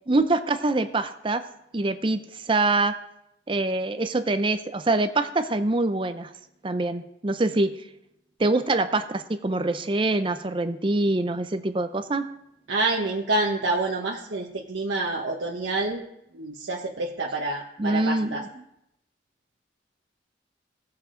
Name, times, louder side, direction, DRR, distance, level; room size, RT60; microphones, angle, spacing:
voice 1, 0.1-1.4 1.7-2.9 3.5-6.3 6.6-7.7 8.4-12.3 17.8-18.6, right 2 dB, 25° right, 10 dB, 0.5 m, -24 dB
voice 2, 12.7-16.0 16.3-18.4, right 2 dB, 80° right, -1 dB, 1.0 m, -27 dB
17.0 x 7.0 x 3.8 m, 0.80 s
head